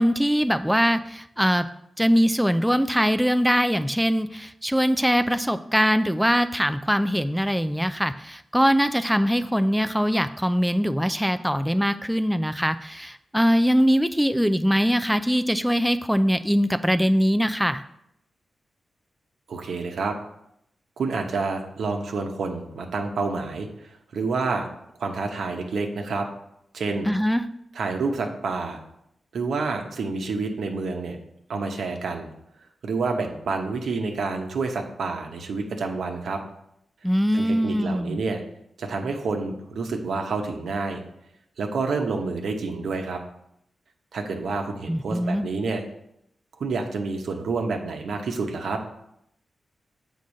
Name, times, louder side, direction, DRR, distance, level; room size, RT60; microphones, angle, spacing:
voice 1, 0.0-1.7 2.0-17.8 27.1-27.5 37.0-38.2 44.9-45.5, equal, ahead, 10 dB, 0.3 m, -22 dB
voice 2, 19.5-20.1 21.0-24.6 25.0-26.3 26.7-27.1 27.7-28.8 29.3-31.2 31.5-32.3 32.8-36.4 37.3-38.4 38.8-41.0 41.6-43.2 44.1-45.8 46.6-48.8, right 4 dB, 85° right, 3 dB, 1.0 m, -28 dB
7.2 x 3.8 x 6.3 m, 0.77 s
cardioid pair, 85°, 0 cm